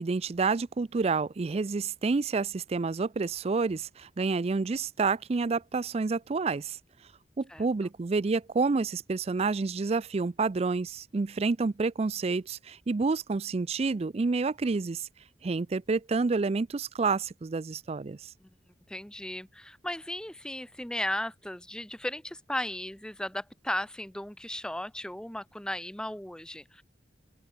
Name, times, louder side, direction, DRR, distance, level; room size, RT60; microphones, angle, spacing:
voice 1, 0.0-6.8 7.4-15.1 15.4-18.3, right 4 dB, 35° right, 0.4 m, -29 dB
voice 2, 18.9-26.8, left 1 dB, 5° left, 0.6 m, -36 dB
open air
head